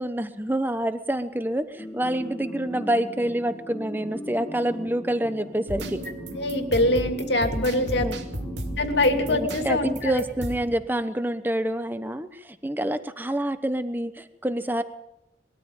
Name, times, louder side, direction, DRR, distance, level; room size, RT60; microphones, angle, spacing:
voice 1, 0.0-6.0 7.7-8.1 9.3-14.8, right 1 dB, 10° right, 10 dB, 1.0 m, -27 dB
sound 1, 1.8-10.5, equal, 20° left, 0.8 m, -40 dB
sound 2, 5.7-10.8, right 1 dB, 85° right, 2.5 m, -34 dB
voice 2, 6.4-8.1 8.8-10.1, left 1 dB, 70° left, 6 dB, 2.6 m, -23 dB
21.5 x 13.5 x 8.9 m, 0.90 s
head